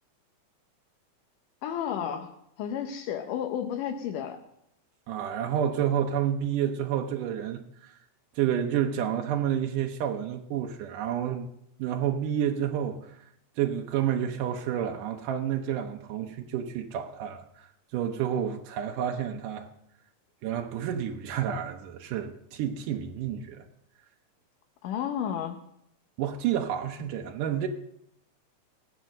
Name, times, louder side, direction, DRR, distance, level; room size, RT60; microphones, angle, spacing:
voice 1, 1.6-4.4 24.8-25.6, left 9 dB, 90° left, 2.5 m, -32 dB
voice 2, 5.1-8.0 8.4-11.5 11.8-13.2 13.6-17.7 17.9-19.7 20.4-23.7 26.2-27.7, right 9 dB, 85° right, 2.5 m, -29 dB
18.0 x 8.0 x 6.3 m
omnidirectional pair, 3.6 m